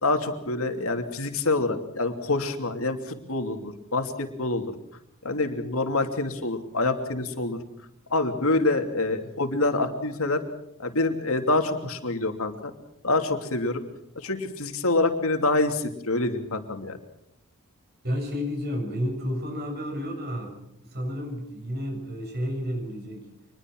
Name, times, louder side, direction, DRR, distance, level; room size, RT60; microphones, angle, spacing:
voice 1, 0.0-4.7 5.2-7.6 8.1-10.4 10.8-12.5 13.0-13.8 14.2-17.0, left 2 dB, 65° left, 6 dB, 2.9 m, -26 dB
voice 2, 18.0-23.3, equal, 45° right, 3 dB, 6.8 m, -31 dB
26.0 x 21.0 x 6.3 m, 0.78 s
head